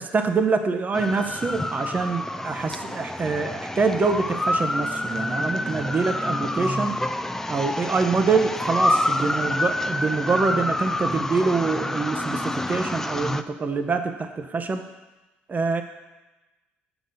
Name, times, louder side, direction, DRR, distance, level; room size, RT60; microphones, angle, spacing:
voice 1, 0.0-6.9 7.5-14.8 15.5-15.8, right 4 dB, 35° right, 7 dB, 0.8 m, -25 dB
sound 1, 0.9-13.4, left 1 dB, 10° left, 0.5 m, -27 dB
8.1 x 5.1 x 6.8 m, 1.1 s
hypercardioid pair, 60°, 5 cm